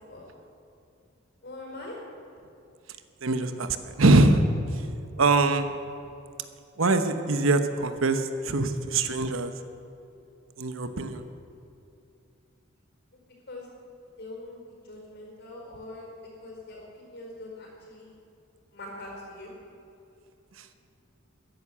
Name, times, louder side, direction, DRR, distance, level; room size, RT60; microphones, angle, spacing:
voice 1, 1.4-2.0 5.2-5.3 13.5-13.7 14.2-16.1 16.4-18.1 18.7-19.5, left 2 dB, 55° left, -1 dB, 4.7 m, -42 dB
voice 2, 3.2-4.4 5.2-5.7 6.8-9.5 10.6-11.2, right 2 dB, 70° right, 9 dB, 1.0 m, -23 dB
14.5 x 11.0 x 7.5 m, 2.6 s
head